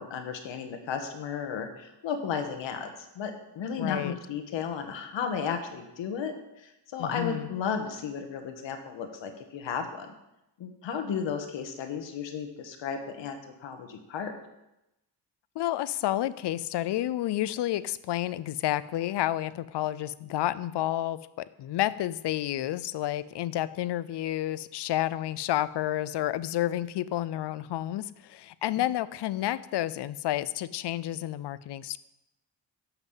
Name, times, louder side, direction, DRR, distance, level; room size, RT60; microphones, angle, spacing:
voice 1, 0.0-10.1 10.6-14.3, left 6 dB, 85° left, 6 dB, 1.6 m, -34 dB
voice 2, 3.8-4.2 7.0-7.5 15.6-21.2 21.6-32.0, left 13 dB, 70° left, 17 dB, 0.6 m, -30 dB
11.0 x 6.0 x 7.3 m, 0.91 s
cardioid pair, 115°, 44 cm